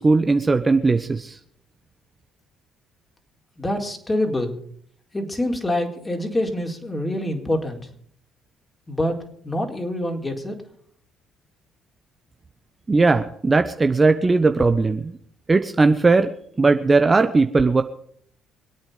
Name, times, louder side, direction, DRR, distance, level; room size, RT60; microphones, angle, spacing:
voice 1, 0.0-1.4 12.9-15.2 15.5-16.3 16.6-17.8, right 3 dB, 25° right, 8 dB, 1.2 m, -18 dB
voice 2, 3.6-4.6 5.1-7.9 8.9-9.2 9.4-10.6, left 1 dB, 20° left, 3 dB, 4.4 m, -25 dB
25.5 x 9.0 x 5.2 m, 0.63 s
hypercardioid pair, 60°, 0 cm